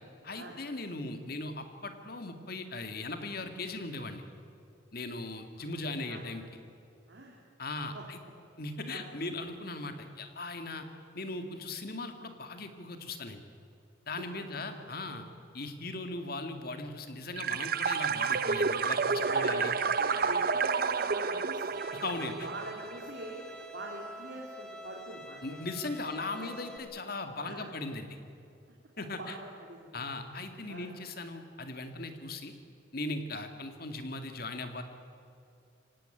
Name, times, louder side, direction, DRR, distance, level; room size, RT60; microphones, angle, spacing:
voice 1, 0.2-4.2 4.9-6.4 7.6-8.2 8.6-10.9 11.1-13.4 14.1-15.2 15.5-19.0 19.2-19.7 21.9-22.5 25.4-28.2 29.0-29.4 29.9-32.6 32.9-34.8, left 2 dB, 50° left, 7 dB, 2.1 m, -38 dB
sound 1, 17.4-23.1, right 5 dB, 50° right, 0.8 m, -30 dB
voice 2, 19.1-21.6 22.4-23.4 23.7-25.6 26.0-26.5 27.4-27.7 29.2-30.0 30.7-30.9, right 2 dB, 65° right, -2 dB, 3.1 m, -43 dB
Bowed string instrument, 21.8-26.8, equal, 5° left, 2.8 m, -48 dB
25.0 x 17.5 x 9.1 m, 2.5 s
head